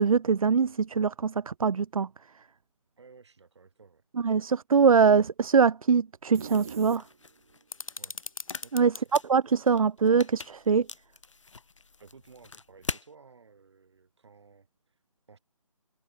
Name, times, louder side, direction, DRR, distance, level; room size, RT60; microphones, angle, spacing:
voice 1, 0.0-2.1 4.2-7.0 8.7-8.9 9.3-10.9, right 5 dB, 85° right, 0.5 m, -23 dB
voice 2, 3.0-4.0 7.9-8.2 8.6-9.1 12.0-15.0 15.3-15.4, right 5 dB, 55° right, 6.0 m, -55 dB
sound 1, 6.3-7.6, right 7 dB, 25° right, 0.7 m, -41 dB
sound 2, 6.5-13.1, left 4 dB, 60° left, 3.9 m, -43 dB
sound 3, 7.7-9.0, left 4 dB, 80° left, 1.5 m, -40 dB
figure-of-eight pair, 165°, 17 cm